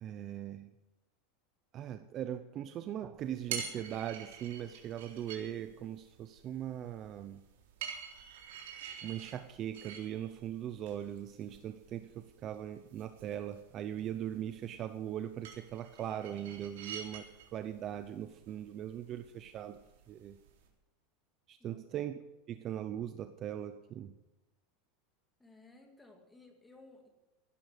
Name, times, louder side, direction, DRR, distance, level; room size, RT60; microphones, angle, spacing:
voice 1, 0.0-0.7 1.7-7.4 9.0-19.8 20.1-20.4 21.5-22.2 22.5-24.1, right 10 dB, 25° right, 10 dB, 0.6 m, -40 dB
sound 1, 3.2-20.7, right 7 dB, 80° right, 3.9 m, -48 dB
voice 2, 25.4-27.1, left 2 dB, 5° left, 3 dB, 2.1 m, -57 dB
16.5 x 11.5 x 6.7 m, 1.0 s
supercardioid pair, 175°, 0 cm